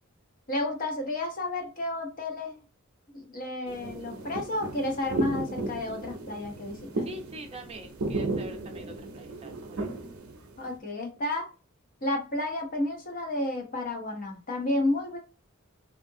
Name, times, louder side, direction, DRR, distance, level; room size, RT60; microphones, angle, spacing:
voice 1, 0.5-2.6 3.1-7.1 10.6-11.5 12.0-15.2, left 2 dB, 40° left, 2 dB, 0.7 m, -31 dB
sound 1, 3.7-10.8, right 2 dB, 75° right, 0.6 m, -35 dB
voice 2, 7.0-9.9, right 1 dB, 30° right, 3 dB, 0.6 m, -44 dB
2.7 x 2.4 x 2.6 m, 0.35 s
head